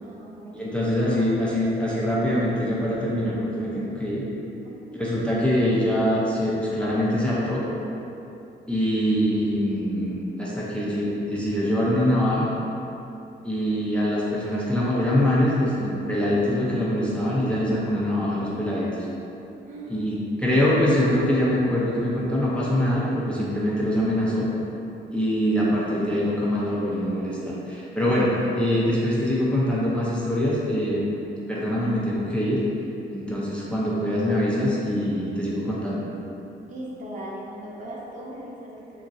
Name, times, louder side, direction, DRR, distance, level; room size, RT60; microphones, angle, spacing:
voice 1, 0.0-1.2 4.6-5.0 19.7-20.0 36.7-39.0, right 1 dB, 40° right, -5 dB, 0.6 m, -39 dB
voice 2, 0.5-4.2 4.9-7.6 8.7-12.5 13.4-19.1 19.9-24.5 25.1-31.0 31.5-32.6 33.1-36.0, equal, 5° left, -7 dB, 0.5 m, -24 dB
2.9 x 2.5 x 2.5 m, 2.8 s
cardioid pair, 90°, 20 cm